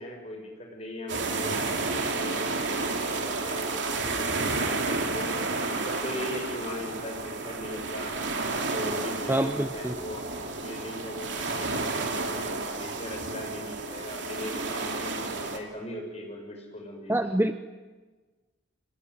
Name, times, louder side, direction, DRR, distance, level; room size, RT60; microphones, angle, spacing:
voice 1, 0.0-5.3 5.6-8.2 8.7-10.3 10.6-17.1, left 1 dB, 35° left, 1 dB, 6.6 m, -39 dB
sound 1, 1.1-15.6, right 3 dB, 75° right, 2.9 m, -31 dB
voice 2, 9.3-9.9 17.1-17.5, right 1 dB, 10° right, 8 dB, 0.7 m, -25 dB
24.5 x 20.0 x 9.8 m, 1.3 s
head